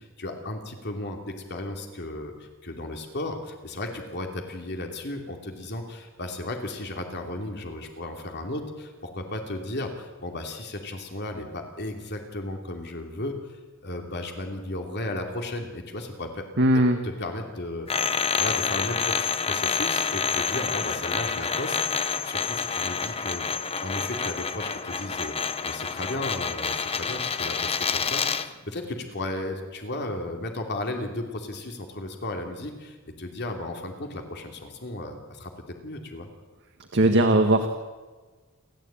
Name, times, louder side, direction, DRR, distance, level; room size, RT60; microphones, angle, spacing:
voice 1, 0.0-16.4 17.0-23.5 23.8-35.5 35.8-36.3, left 2 dB, 50° left, 3 dB, 2.9 m, -35 dB
voice 2, 16.6-17.0 36.9-37.7, right 1 dB, 55° right, 5 dB, 1.6 m, -19 dB
sound 1, 17.9-28.5, left 5 dB, 25° left, 0.9 m, -28 dB
29.0 x 13.5 x 8.9 m, 1.3 s
head